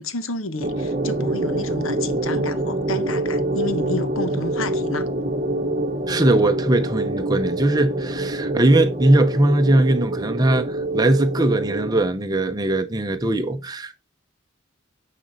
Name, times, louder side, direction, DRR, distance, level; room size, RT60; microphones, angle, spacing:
voice 1, 0.0-5.1, left 2 dB, 75° left, 1.2 m, -30 dB
sound 1, 0.6-12.0, right 1 dB, 35° right, 1.0 m, -25 dB
voice 2, 6.1-14.0, right 1 dB, 20° right, 0.7 m, -20 dB
9.3 x 5.0 x 4.1 m
head